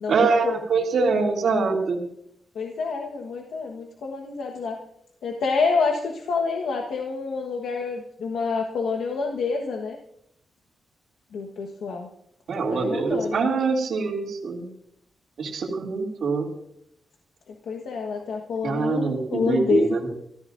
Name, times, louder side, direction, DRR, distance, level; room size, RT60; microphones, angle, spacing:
voice 1, 0.1-2.0 12.5-14.7 15.4-16.5 18.6-20.1, right 4 dB, 70° right, 0 dB, 2.5 m, -24 dB
voice 2, 2.5-4.8 5.2-10.0 11.3-12.1 12.6-13.4 17.5-19.9, left 4 dB, 90° left, 2 dB, 1.3 m, -27 dB
27.0 x 14.0 x 2.6 m, 0.77 s
wide cardioid pair, 125°, 0 cm